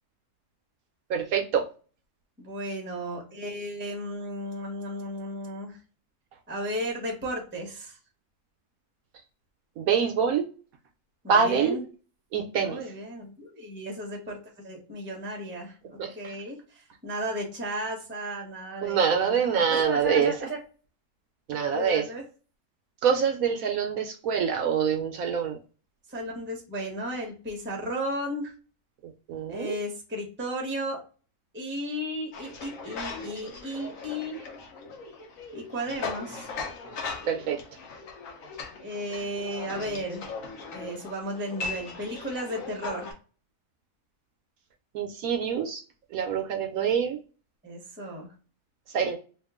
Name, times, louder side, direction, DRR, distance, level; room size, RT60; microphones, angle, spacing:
voice 1, 1.1-1.6 9.8-10.5 11.3-11.8 12.3-12.8 16.0-16.3 18.8-20.3 21.5-22.0 23.0-25.6 29.0-29.8 37.3-37.6 44.9-45.8 46.1-47.2 48.9-49.2, right 7 dB, 70° right, 4 dB, 1.0 m, -25 dB
voice 2, 2.4-5.8 6.5-8.0 11.2-11.8 12.6-20.6 21.7-22.2 26.1-28.5 29.5-31.0 31.5-34.5 35.5-36.5 38.8-40.3 40.7-43.1 47.6-48.3, equal, 10° right, 0 dB, 0.6 m, -34 dB
sound 1, 32.3-43.1, left 4 dB, 60° left, 1.1 m, -39 dB
2.9 x 2.4 x 3.5 m, 0.36 s
omnidirectional pair, 1.7 m